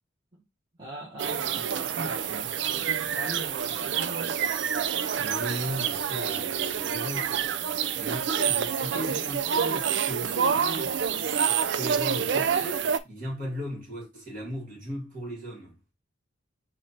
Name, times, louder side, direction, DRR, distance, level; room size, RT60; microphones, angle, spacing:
voice 1, 0.8-4.4, right 1 dB, 20° right, 1.2 m, -41 dB
sound 1, 1.2-13.0, right 7 dB, 60° right, 0.4 m, -28 dB
voice 2, 5.2-7.6 7.9-11.2 11.5-15.8, equal, 45° right, 2.4 m, -37 dB
4.2 x 2.6 x 4.2 m
head